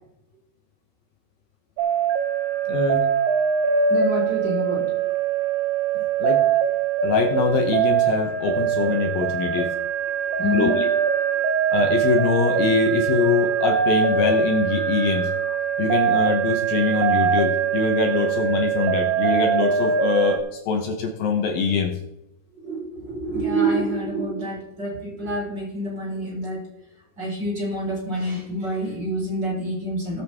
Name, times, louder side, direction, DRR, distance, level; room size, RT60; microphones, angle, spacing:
sound 1, 1.8-20.4, right 7 dB, 75° right, 2.6 m, -22 dB
voice 1, 2.7-3.1 6.2-6.4 7.0-9.7 10.5-10.9 11.7-15.3 15.8-21.9, left 5 dB, 70° left, 4 dB, 2.3 m, -23 dB
voice 2, 3.9-4.8 10.4-10.8 22.5-26.6 27.2-30.2, right 1 dB, 25° right, -3 dB, 4.5 m, -27 dB
19.0 x 8.0 x 3.6 m, 0.85 s
omnidirectional pair, 5.3 m